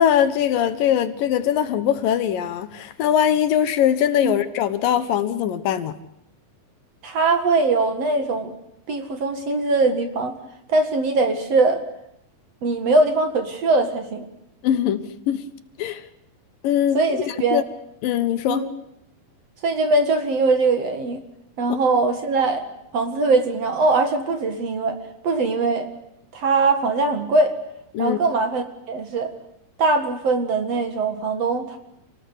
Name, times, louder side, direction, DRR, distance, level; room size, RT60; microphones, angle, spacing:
voice 1, 0.0-6.0 14.6-15.5 15.8-16.0 16.6-17.6 18.0-18.6 27.9-28.2, left 9 dB, 75° left, 2.8 m, -21 dB
voice 2, 7.0-8.5 8.9-10.4 10.7-11.8 12.6-14.3 16.9-17.6 18.5-18.7 19.6-21.2 21.6-22.7 22.9-25.9 26.3-27.6 28.0-29.3 29.8-31.8, right 3 dB, 50° right, 2.7 m, -21 dB
28.0 x 19.0 x 8.2 m
omnidirectional pair, 4.1 m